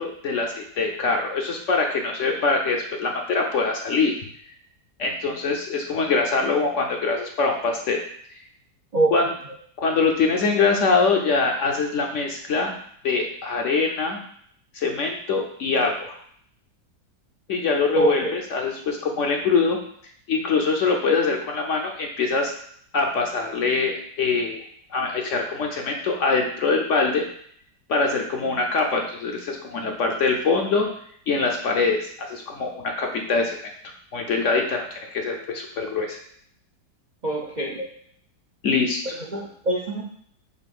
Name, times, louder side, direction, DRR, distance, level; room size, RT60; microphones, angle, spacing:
voice 1, 0.0-4.1 5.0-8.0 9.1-9.3 9.8-12.8 13.0-14.2 14.7-16.1 17.5-19.8 20.3-22.5 22.9-24.6 24.9-27.2 27.9-30.9 31.3-33.6 34.1-36.2 37.8-37.9 38.6-39.0, left 4 dB, 60° left, 2 dB, 0.9 m, -23 dB
voice 2, 17.9-18.3 37.2-37.8 39.1-40.0, right 2 dB, 45° right, -2 dB, 0.5 m, -24 dB
6.6 x 2.7 x 5.3 m, 0.63 s
omnidirectional pair, 1.8 m